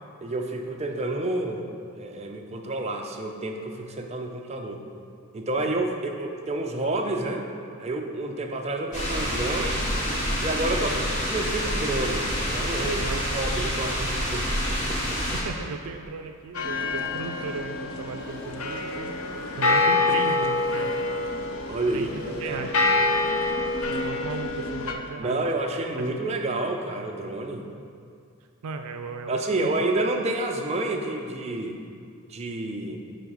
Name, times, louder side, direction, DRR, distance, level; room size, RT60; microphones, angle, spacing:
voice 1, 0.2-1.6 1.9-4.8 5.3-7.5 7.8-9.8 10.4-10.9 11.3-13.0 13.3-15.4 21.7-22.7 25.2-27.7 29.3-31.8 32.3-33.0, right 2 dB, 30° right, 2 dB, 0.6 m, -29 dB
sound 1, 8.9-15.4, equal, 35° left, 1.8 m, -27 dB
voice 2, 10.6-11.0 12.8-13.4 15.4-19.2 19.6-20.9 21.9-22.7 23.8-25.4 26.0-26.1 28.6-29.7, right 4 dB, 80° right, 6 dB, 0.4 m, -36 dB
sound 2, 16.5-24.9, left 3 dB, 70° left, 0.6 m, -26 dB
sound 3, 18.1-24.0, left 1 dB, 90° left, 1.9 m, -46 dB
9.4 x 3.9 x 5.3 m, 2.3 s
head